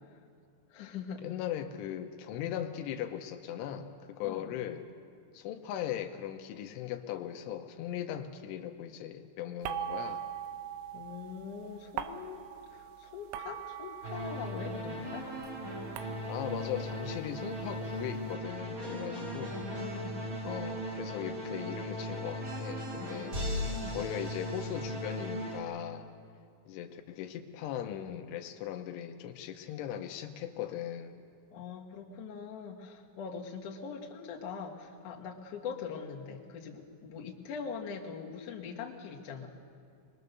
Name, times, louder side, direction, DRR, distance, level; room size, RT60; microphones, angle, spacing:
voice 1, 0.7-1.2 4.2-4.5 10.9-12.4 12.7-15.3 19.1-20.2 23.7-24.1 31.5-39.5, left 6 dB, 55° left, -1 dB, 2.5 m, -42 dB
voice 2, 1.2-4.9 5.3-10.3 16.3-19.6 20.4-23.4 23.9-26.1 26.7-31.2, left 10 dB, 85° left, 6 dB, 3.2 m, -39 dB
sound 1, 9.6-14.9 15.2-18.1, right 9 dB, 85° right, 3.3 m, -42 dB
sound 2, 14.0-25.6, equal, 35° right, 1.4 m, -37 dB
22.5 x 21.5 x 6.7 m, 2.2 s
omnidirectional pair, 5.5 m